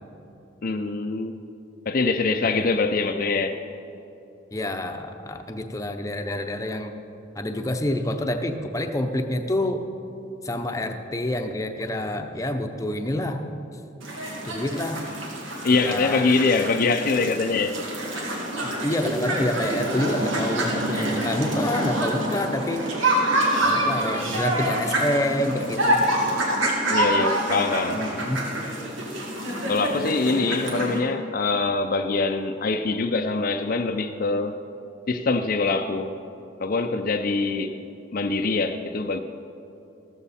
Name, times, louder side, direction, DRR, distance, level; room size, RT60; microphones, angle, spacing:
voice 1, 0.6-1.4 1.9-3.6 15.6-17.8 26.9-28.0 29.7-34.6 35.1-36.2 36.6-37.8 38.1-39.2, left 3 dB, 50° left, 0.5 m, -24 dB
voice 2, 2.4-2.8 4.5-6.9 7.4-9.9 10.4-13.5 14.4-15.0 15.7-16.3 18.6-22.9 23.6-26.0 27.9-28.4, left 1 dB, 15° left, 0.7 m, -28 dB
sound 1, 14.0-31.0, right 1 dB, 85° right, 2.4 m, -26 dB
14.5 x 14.0 x 4.3 m
head